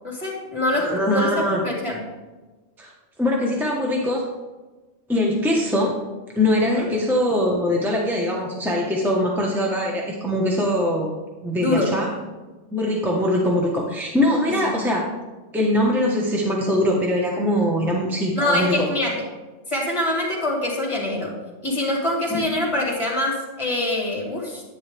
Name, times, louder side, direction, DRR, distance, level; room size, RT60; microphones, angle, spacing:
voice 1, 0.0-2.0 6.6-6.9 11.6-12.0 14.6-14.8 18.3-19.2 19.7-21.3 21.6-24.6, left 1 dB, 25° left, -2 dB, 2.9 m, -24 dB
voice 2, 0.7-1.6 2.8-2.9 3.2-4.2 5.1-5.9 6.4-11.1 11.4-12.1 12.7-15.0 15.5-18.9 22.3-22.4, left 1 dB, ahead, -2 dB, 1.2 m, -22 dB
10.5 x 9.5 x 3.5 m, 1.2 s
omnidirectional pair, 1.3 m